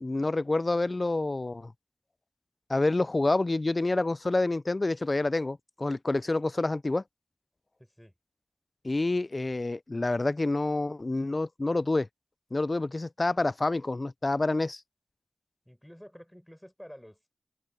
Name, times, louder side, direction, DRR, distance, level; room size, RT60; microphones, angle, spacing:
voice 1, 0.0-1.7 2.7-7.0 8.8-12.1 12.5-14.8, left 2 dB, 40° left, 0.4 m, -28 dB
voice 2, 7.8-8.1 15.6-17.3, equal, 5° left, 6.2 m, -50 dB
open air
cardioid pair, 55°, 0 cm